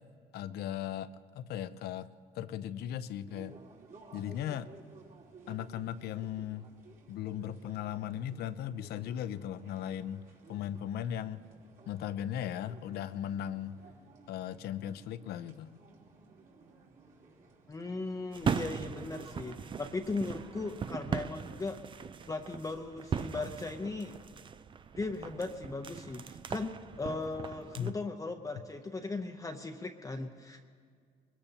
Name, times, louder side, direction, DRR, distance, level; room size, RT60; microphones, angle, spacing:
voice 1, 0.3-2.1 2.3-3.6 4.1-4.7 5.5-6.7 7.1-10.2 10.5-11.5 11.9-13.8 14.3-15.7 27.8-27.9, left 10 dB, 70° left, 13 dB, 0.6 m, -37 dB
sound 1, 3.3-21.3, right 4 dB, 55° right, 3.4 m, -57 dB
voice 2, 17.7-21.8 22.3-24.1 25.0-30.6, left 3 dB, 20° left, 4 dB, 0.7 m, -38 dB
sound 2, 18.3-27.9, right 6 dB, 30° right, 0.4 m, -39 dB
22.5 x 20.5 x 2.9 m, 2.1 s
cardioid pair, 110°, 17 cm